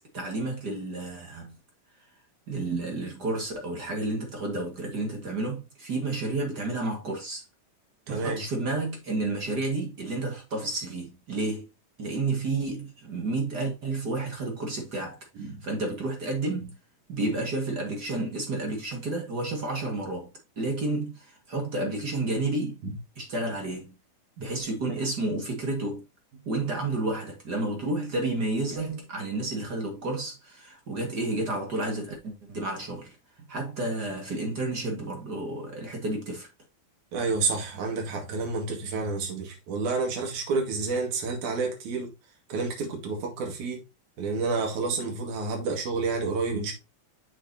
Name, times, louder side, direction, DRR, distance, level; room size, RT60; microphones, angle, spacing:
voice 1, 0.1-1.5 2.5-7.4 8.1-11.7 12.0-16.7 17.1-20.3 20.6-22.8 23.2-23.9 24.4-26.0 26.5-33.2 33.5-36.5, right 2 dB, 35° right, 2.0 m, -31 dB
voice 2, 8.1-8.4 15.4-15.6 22.8-22.9 37.1-42.1 42.5-43.8 44.2-46.7, right 4 dB, 70° right, 3.5 m, -29 dB
7.1 x 6.7 x 2.8 m
omnidirectional pair, 3.6 m